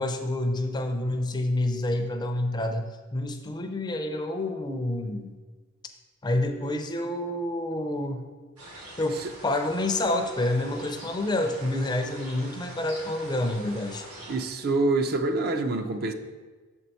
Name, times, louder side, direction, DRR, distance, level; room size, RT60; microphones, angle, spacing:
voice 1, 0.0-5.3 6.2-8.2 9.0-14.1, left 1 dB, 20° left, 5 dB, 0.4 m, -28 dB
sound 1, 8.6-14.4, right 1 dB, 85° right, 2.0 m, -44 dB
voice 2, 14.3-16.1, right 2 dB, 45° right, 7 dB, 0.4 m, -26 dB
6.9 x 4.4 x 4.1 m, 1.3 s
head